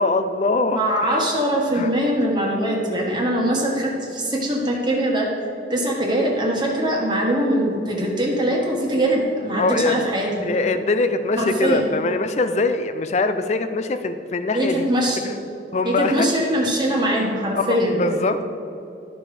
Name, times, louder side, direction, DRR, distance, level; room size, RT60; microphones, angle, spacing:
voice 1, 0.0-1.2 1.7-1.9 9.6-10.1 10.4-14.9 15.2-15.4 15.7-16.3 17.5-18.5, left 3 dB, 40° left, 10 dB, 0.4 m, -23 dB
voice 2, 0.7-5.3 5.7-10.5 11.4-11.9 14.5-15.3 15.8-18.2, right 1 dB, 25° right, -2 dB, 1.3 m, -22 dB
13.0 x 5.1 x 4.8 m, 2.8 s
head